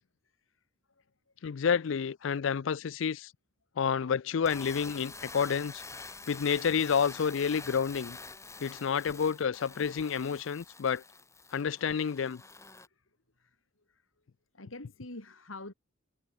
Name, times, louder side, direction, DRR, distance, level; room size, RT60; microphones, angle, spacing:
voice 1, 1.4-3.3 3.8-5.8 6.3-8.2 8.6-11.0 11.5-12.4, left 6 dB, 70° left, 0.4 m, -29 dB
sound 1, 4.3-12.9, left 3 dB, 15° left, 4.0 m, -47 dB
voice 2, 14.5-15.7, left 2 dB, 90° left, 4.1 m, -46 dB
head